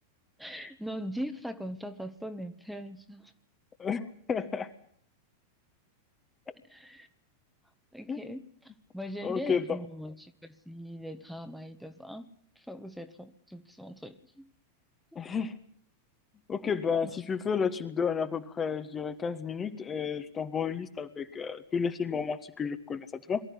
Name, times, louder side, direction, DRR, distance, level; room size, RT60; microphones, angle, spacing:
voice 1, 0.4-3.3 6.5-7.1 7.9-12.3 12.5-14.5 15.1-15.2 17.0-17.1, equal, ahead, 8 dB, 1.4 m, -41 dB
voice 2, 3.8-4.7 8.1-8.2 9.2-9.7 15.1-15.5 16.5-23.4, left 6 dB, 20° left, 8 dB, 1.4 m, -31 dB
23.5 x 13.0 x 9.9 m, 0.63 s
figure-of-eight pair, 90°, 0 cm